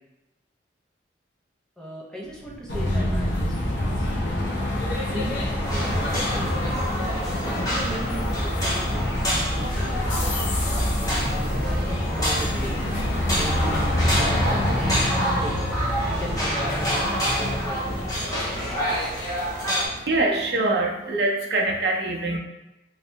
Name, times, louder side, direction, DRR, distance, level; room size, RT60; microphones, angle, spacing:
voice 1, 1.8-4.4 5.1-6.1 6.4-6.5 7.6-8.4 8.6-9.9 11.0-12.9 13.3-15.6 16.1-19.0 19.5-19.7, equal, 5° left, -5 dB, 0.6 m, -37 dB
sound 1, 2.7-20.4, left 1 dB, 90° left, 0.8 m, -26 dB
sound 2, 5.7-19.9, equal, 20° left, 1.0 m, -28 dB
voice 2, 20.1-22.4, right 2 dB, 60° right, 1 dB, 0.5 m, -23 dB
3.1 x 2.7 x 3.3 m, 0.95 s
head